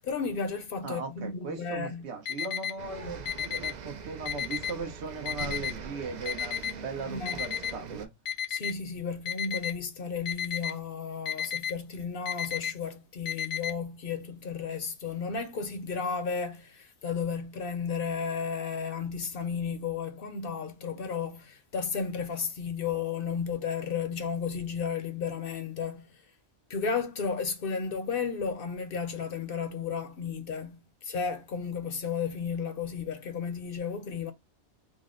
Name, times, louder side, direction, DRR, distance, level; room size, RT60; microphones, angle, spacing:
voice 1, 0.0-2.1 3.0-3.1 7.1-7.4 8.5-26.2 26.7-34.3, left 6 dB, 60° left, 0.8 m, -33 dB
voice 2, 0.8-8.1, right 4 dB, 70° right, 1.2 m, -38 dB
Alarm, 2.2-2.7 3.2-3.7 4.2-4.7 5.2-5.7 6.2-6.7 7.2-7.7 8.2-8.7 9.2-9.7 10.2-10.7 11.2-11.7 12.2-12.7 13.2-13.7, left 8 dB, 90° left, 1.1 m, -31 dB
sound 1, 2.8-8.1, right 5 dB, 50° right, 0.6 m, -42 dB
3.9 x 2.1 x 3.7 m
omnidirectional pair, 1.2 m